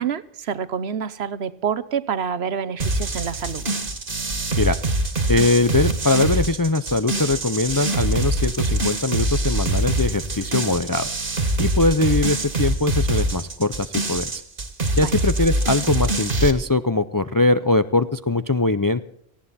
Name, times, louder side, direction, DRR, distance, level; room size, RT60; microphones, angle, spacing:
voice 1, 0.0-3.7 15.0-15.1, right 7 dB, 70° right, 14 dB, 1.1 m, -27 dB
sound 1, 2.8-16.5, right 2 dB, 55° right, 1.9 m, -24 dB
voice 2, 5.3-11.1 11.6-14.4 15.0-19.0, left 2 dB, 30° left, 12 dB, 0.4 m, -21 dB
19.0 x 15.5 x 4.2 m, 0.70 s
omnidirectional pair, 1.1 m